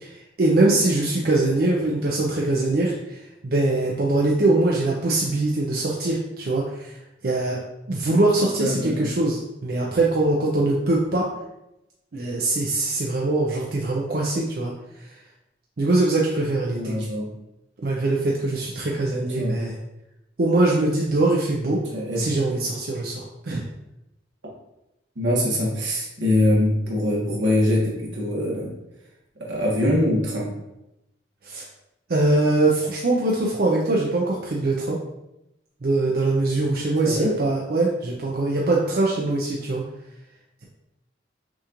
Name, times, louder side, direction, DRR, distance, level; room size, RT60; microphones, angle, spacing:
voice 1, 0.0-3.2 3.4-6.9 7.2-7.6 7.9-11.3 12.1-14.7 15.8-17.0 17.8-19.8 20.4-21.8 22.2-23.6 31.4-31.6 32.1-35.0 35.8-39.8, right 2 dB, 55° right, -3 dB, 0.5 m, -22 dB
voice 2, 8.6-9.1 16.7-17.3 19.1-19.6 21.6-22.3 25.1-28.7 29.4-30.5 37.0-37.4, left 1 dB, 85° right, -4 dB, 1.4 m, -23 dB
6.0 x 2.5 x 2.9 m, 0.90 s
head